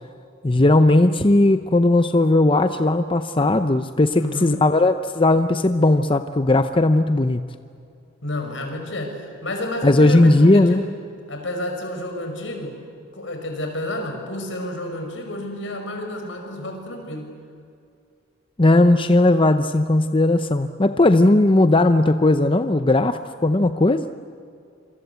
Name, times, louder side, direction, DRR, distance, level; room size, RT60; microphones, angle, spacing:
voice 1, 0.4-7.5 9.8-10.8 18.6-24.1, left 2 dB, 25° left, 9 dB, 0.7 m, -17 dB
voice 2, 4.2-4.6 8.2-11.0 11.3-12.8 13.1-17.3, left 1 dB, 75° left, 4 dB, 5.7 m, -30 dB
26.5 x 26.0 x 8.3 m, 2.4 s
head